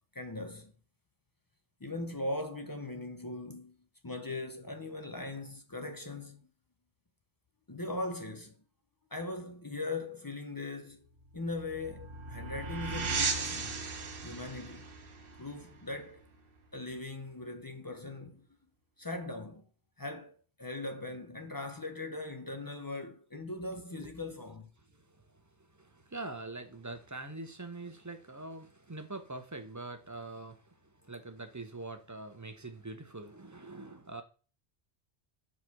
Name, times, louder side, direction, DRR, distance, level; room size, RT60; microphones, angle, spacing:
voice 1, 0.1-0.7 1.8-3.8 4.0-6.5 7.7-8.6 9.1-11.1 11.3-13.8 14.2-14.9 15.4-16.2 16.7-18.5 19.0-19.7 20.0-24.7, left 2 dB, 25° left, 0.5 m, -40 dB
sound 1, 11.2-16.6, right 4 dB, 60° right, 1.1 m, -37 dB
voice 2, 24.8-34.2, right 2 dB, 20° right, 0.6 m, -44 dB
5.0 x 4.1 x 5.9 m
omnidirectional pair, 1.1 m